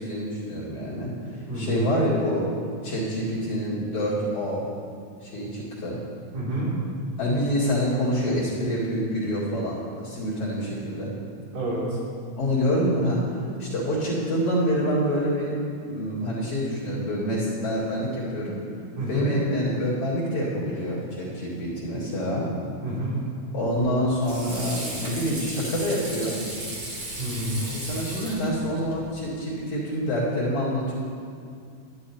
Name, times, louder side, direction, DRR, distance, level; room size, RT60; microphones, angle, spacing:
voice 1, 0.0-2.5 2.8-4.6 5.2-6.0 7.2-11.1 12.4-15.5 15.8-18.6 19.1-22.5 23.5-26.4 27.7-30.9, equal, 45° left, -8 dB, 2.9 m, -26 dB
voice 2, 6.3-6.7 11.5-12.0 19.0-19.3 22.8-23.2 27.2-27.7, right 1 dB, 65° right, -9 dB, 5.4 m, -28 dB
Water / Sink (filling or washing), 23.6-29.1, right 1 dB, 40° right, 1.5 m, -36 dB
12.0 x 11.0 x 4.3 m, 2.3 s
omnidirectional pair, 4.3 m